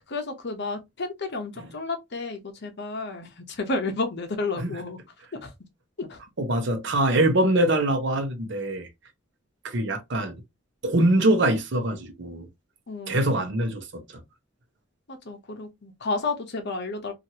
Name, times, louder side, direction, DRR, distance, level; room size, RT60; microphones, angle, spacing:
voice 1, 0.1-5.0 5.4-5.5 6.0-6.2 12.9-13.5 15.1-17.1, left 3 dB, 60° left, 0.8 m, -31 dB
voice 2, 6.4-8.9 9.6-10.3 10.8-12.5 13.1-14.0, right 1 dB, 60° right, 0.8 m, -23 dB
2.9 x 2.5 x 2.8 m
head